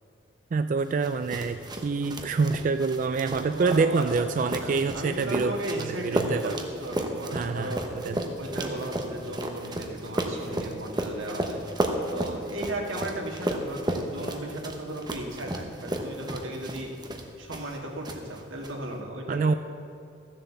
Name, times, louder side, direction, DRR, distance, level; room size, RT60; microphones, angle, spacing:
voice 1, 0.5-6.5 7.3-7.8 8.0-8.3 19.3-19.5, right 4 dB, 40° right, 9 dB, 0.3 m, -26 dB
sound 1, 1.0-17.8 18.0-18.7, right 1 dB, 20° right, 0.9 m, -33 dB
voice 2, 3.5-4.0 4.4-7.8 8.4-11.6 12.1-16.9 17.4-19.6, right 1 dB, 90° right, 0 dB, 1.9 m, -36 dB
13.5 x 7.6 x 6.9 m, 2.6 s
head